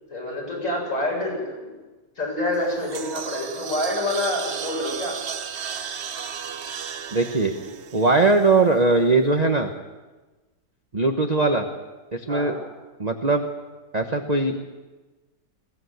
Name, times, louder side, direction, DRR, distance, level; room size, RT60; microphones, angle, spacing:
voice 1, 0.1-1.7 2.2-5.2 7.6-7.7 12.3-12.6, left 1 dB, 40° left, -2 dB, 7.7 m, -27 dB
sound 1, 2.5-8.8, right 7 dB, 55° right, 0.7 m, -34 dB
voice 2, 7.1-7.5 7.9-9.7 10.9-11.6 12.1-12.5 13.0-13.4 13.9-14.6, right 3 dB, 25° right, 4 dB, 1.0 m, -20 dB
21.5 x 17.5 x 8.1 m, 1.2 s
omnidirectional pair, 2.1 m